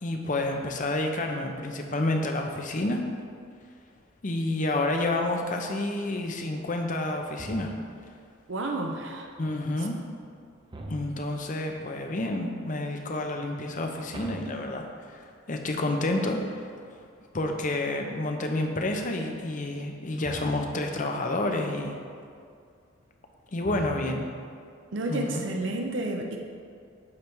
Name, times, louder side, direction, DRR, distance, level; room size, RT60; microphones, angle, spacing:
voice 1, 0.0-3.1 4.2-7.7 9.4-10.0 10.9-16.7 17.3-22.0 23.5-24.3 25.1-25.4, left 2 dB, 40° left, 3 dB, 0.7 m, -29 dB
sound 1, 7.4-8.1 10.7-11.5 14.1-15.3 20.2-20.9 23.6-24.4, right 1 dB, 20° right, 0.5 m, -42 dB
voice 2, 8.5-9.3 9.8-9.9 24.9-26.4, right 2 dB, 60° right, 2 dB, 0.7 m, -31 dB
8.6 x 3.3 x 6.0 m, 2.3 s
head